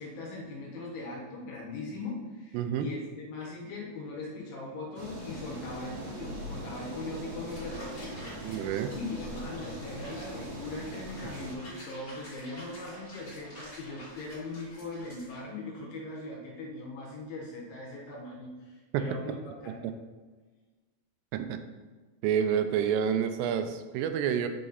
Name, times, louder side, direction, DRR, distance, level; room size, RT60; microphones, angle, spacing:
voice 1, 0.0-8.1 8.9-19.9, left 2 dB, 70° left, -3 dB, 2.4 m, -40 dB
voice 2, 2.5-2.9 8.4-9.0 18.9-19.1 21.3-21.6 22.2-24.5, right 8 dB, 85° right, 8 dB, 2.7 m, -28 dB
sound 1, 4.9-11.5, right 1 dB, 70° right, 1.3 m, -41 dB
sound 2, 7.4-15.4, equal, 30° left, 1.0 m, -49 dB
8.6 x 4.1 x 4.0 m, 1.3 s
omnidirectional pair, 4.9 m